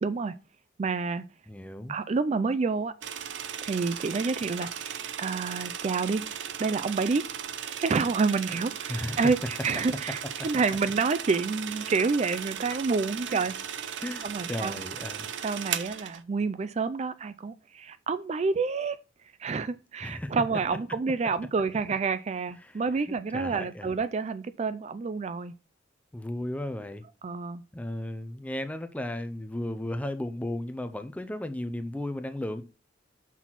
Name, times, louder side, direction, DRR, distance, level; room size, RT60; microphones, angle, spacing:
voice 1, 0.0-0.3 0.8-1.2 1.9-2.9 3.6-6.2 6.6-7.2 7.8-13.5 14.2-14.8 15.4-19.0 19.4-25.5 27.2-27.6, right 4 dB, 35° right, 0.4 m, -28 dB
voice 2, 1.5-2.0 8.9-9.3 13.3-13.4 14.0-15.3 20.0-20.4 22.6-24.0 26.1-27.0 27.7-32.6, left 1 dB, 10° left, 0.6 m, -35 dB
sound 1, 3.0-16.2, right 8 dB, 75° right, 0.6 m, -37 dB
sound 2, 4.6-5.0 5.4-5.8 6.4-6.5 7.1-7.3 7.9-8.0 8.6-8.7 9.1-9.2 9.5-9.8 11.1-11.5 12.4-12.5 12.7-13.0, left 3 dB, 70° left, 1.2 m, -50 dB
6.1 x 4.1 x 5.9 m
head